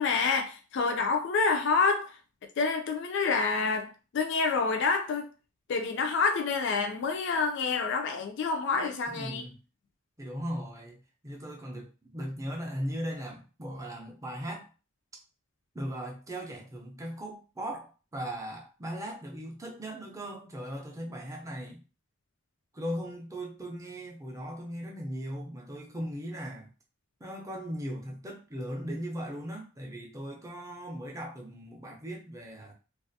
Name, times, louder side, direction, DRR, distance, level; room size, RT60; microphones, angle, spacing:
voice 1, 0.0-2.1 2.6-5.3 5.7-9.4, left 4 dB, 55° left, 0.3 m, -28 dB
voice 2, 9.1-9.6 10.2-11.0 11.2-14.7 15.7-21.8 22.7-26.7 27.2-32.7, equal, 15° right, 0.5 m, -38 dB
2.5 x 2.3 x 2.6 m
head